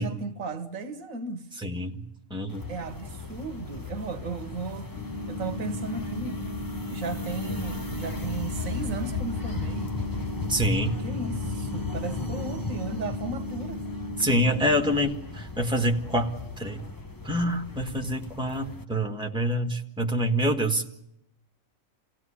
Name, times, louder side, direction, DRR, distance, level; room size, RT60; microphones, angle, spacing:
voice 1, 0.0-1.5 2.7-4.9 5.3-6.4 6.9-10.1 11.0-13.8, right 3 dB, 75° right, 1.5 m, -35 dB
voice 2, 1.6-2.0 2.3-2.7 10.5-11.0 14.2-16.8 17.2-20.8, equal, 5° right, 1.6 m, -26 dB
sound 1, 2.5-18.8, left 3 dB, 15° left, 1.0 m, -36 dB
sound 2, 4.9-14.9, left 1 dB, 45° left, 7.6 m, -36 dB
28.5 x 17.0 x 10.0 m
omnidirectional pair, 1.4 m